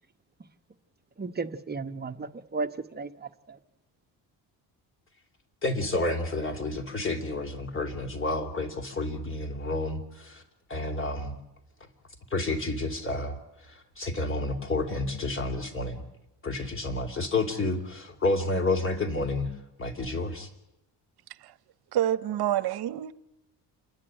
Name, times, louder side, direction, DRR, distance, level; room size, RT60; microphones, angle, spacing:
voice 1, 1.2-3.6, right 3 dB, 25° right, 1.0 m, -35 dB
voice 2, 5.6-10.4 10.7-11.3 12.3-13.4 14.0-16.0 16.4-19.5 19.8-20.5, left 2 dB, 30° left, 3.1 m, -30 dB
voice 3, 21.9-23.1, right 11 dB, 65° right, 0.9 m, -27 dB
29.0 x 11.0 x 9.0 m
cardioid pair, 100°, 41 cm